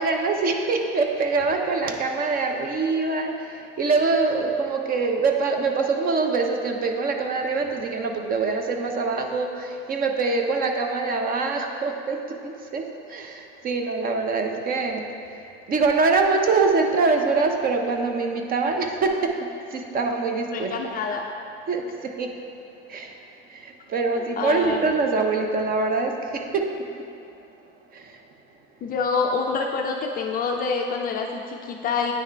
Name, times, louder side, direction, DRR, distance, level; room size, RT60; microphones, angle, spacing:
voice 1, 0.0-15.0 15.4-20.7 21.7-22.3 22.9-23.2 23.5-26.7 27.9-28.2, right 4 dB, 30° right, 4 dB, 0.5 m, -24 dB
voice 2, 20.5-21.3 24.1-24.8 28.8-32.1, left 5 dB, 30° left, 2 dB, 0.4 m, -26 dB
9.2 x 3.5 x 3.3 m, 2.5 s
supercardioid pair, 110°, 32 cm